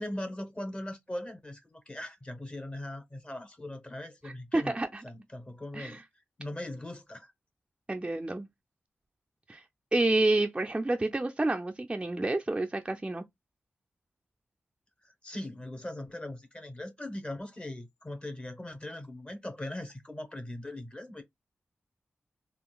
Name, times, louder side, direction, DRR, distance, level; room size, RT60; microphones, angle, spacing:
voice 1, 0.0-4.8 5.0-6.0 6.4-7.3 15.0-21.2, left 1 dB, 25° left, 0.9 m, -40 dB
voice 2, 4.2-5.0 5.7-6.0 7.9-8.5 9.5-9.6 9.9-13.2, right 2 dB, 20° right, 0.4 m, -29 dB
3.7 x 2.4 x 2.2 m
cardioid pair, 70°, 5 cm